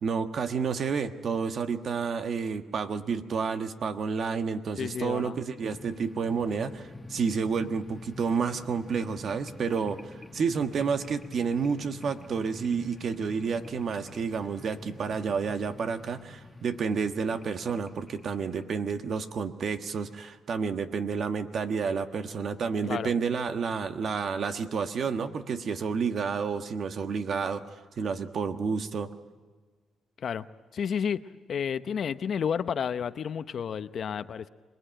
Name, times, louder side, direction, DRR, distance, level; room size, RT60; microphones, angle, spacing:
voice 1, 0.0-29.1, right 5 dB, 55° right, 8 dB, 1.4 m, -30 dB
voice 2, 4.8-5.4 22.9-23.1 30.2-30.4 30.7-31.2 31.5-34.5, left 7 dB, 55° left, 13 dB, 0.7 m, -31 dB
sound 1, 5.6-19.2, left 2 dB, 15° left, 1.6 m, -47 dB
26.0 x 20.0 x 9.0 m, 1.4 s
cardioid pair, 90°, 0 cm